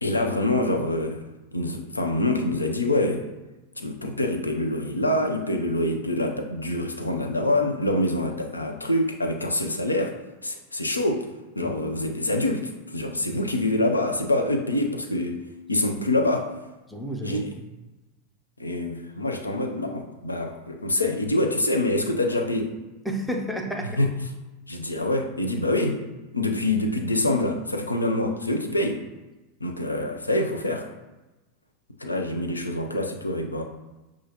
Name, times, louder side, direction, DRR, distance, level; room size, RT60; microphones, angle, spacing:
voice 1, 0.0-1.2 1.5-3.2 3.8-10.1 10.4-11.3 11.6-15.4 15.7-16.5 17.2-17.5 18.6-22.7 24.0-24.1 24.7-26.0 26.3-29.0 29.6-30.9 32.0-33.6, left 1 dB, 80° left, 4 dB, 0.4 m, -25 dB
voice 2, 16.9-17.7 23.0-24.0, equal, ahead, 1 dB, 0.5 m, -31 dB
6.2 x 2.4 x 2.8 m, 1.1 s
figure-of-eight pair, 90°, 0 cm